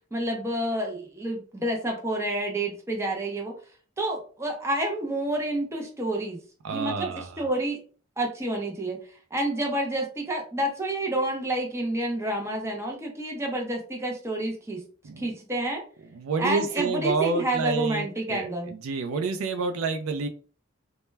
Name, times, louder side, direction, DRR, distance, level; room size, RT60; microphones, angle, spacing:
voice 1, 0.1-3.6 4.0-6.4 6.7-7.8 8.2-14.8 15.2-15.8 16.4-18.7, right 1 dB, 15° right, 1 dB, 0.5 m, -29 dB
voice 2, 6.6-7.3 15.0-15.3 16.1-20.3, right 4 dB, 80° right, 8 dB, 0.4 m, -28 dB
2.1 x 2.1 x 3.2 m, 0.40 s
head